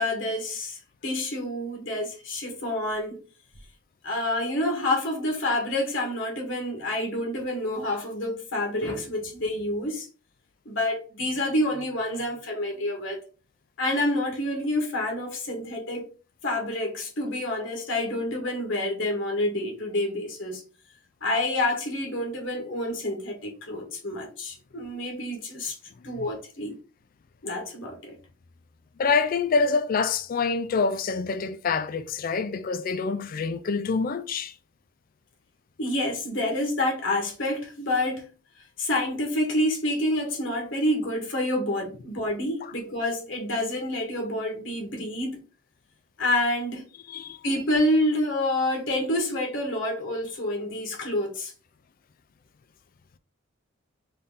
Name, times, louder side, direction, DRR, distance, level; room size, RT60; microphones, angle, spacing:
voice 1, 0.0-3.2 4.0-10.1 10.6-13.2 13.8-16.1 16.4-20.6 21.2-25.8 26.0-26.7 27.4-28.2 35.8-38.3 38.8-45.4 46.2-46.9 47.4-51.5, left 1 dB, 65° left, 1.2 m, -28 dB
voice 2, 29.0-34.5 47.1-47.4, left 4 dB, 45° left, 0.3 m, -26 dB
3.9 x 2.7 x 3.6 m
head